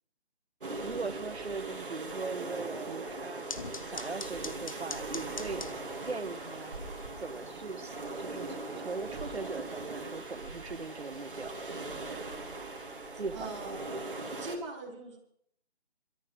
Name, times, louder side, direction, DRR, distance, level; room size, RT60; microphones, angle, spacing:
sound 1, 0.6-14.6, right 2 dB, 50° right, 2.5 m, -40 dB
voice 1, 0.8-3.5 3.8-5.7 6.1-6.8 7.2-11.6 13.1-13.5, right 4 dB, 75° right, 0.9 m, -40 dB
sound 2, 3.5-12.1, left 4 dB, 30° left, 0.7 m, -47 dB
voice 2, 13.3-13.8 14.4-15.2, right 2 dB, 25° right, 3.4 m, -40 dB
26.5 x 13.0 x 3.5 m
figure-of-eight pair, 150°, 33 cm